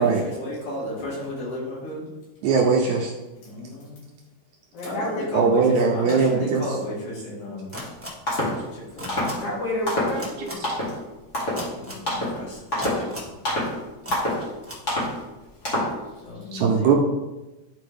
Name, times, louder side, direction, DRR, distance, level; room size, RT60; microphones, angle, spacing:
voice 1, 0.0-2.1 3.4-4.0 4.8-7.7 9.0-9.4 11.7-13.3 16.2-17.0, left 1 dB, 80° left, -7 dB, 4.0 m, -34 dB
voice 2, 2.4-3.1 5.3-6.8 16.5-16.9, right 5 dB, 80° right, 0 dB, 2.0 m, -20 dB
voice 3, 4.7-5.6 9.3-10.7, left 1 dB, 55° left, -8 dB, 2.5 m, -30 dB
sound 1, 7.7-7.9 8.3-8.6 9.1-9.4 9.9-10.2 10.6-11.0 11.3-11.7 12.1-12.4 12.7-13.1 13.4-13.7 14.1-14.5 14.9-15.1 15.6-16.0, left 1 dB, 25° left, 2.0 m, -26 dB
sound 2, 7.7-8.1 9.0-9.3 10.2-10.5 11.5-12.0 12.8-13.3 14.0-14.1 14.6-14.8, equal, 20° right, 0.3 m, -35 dB
10.5 x 4.3 x 3.5 m, 1.1 s
omnidirectional pair, 3.5 m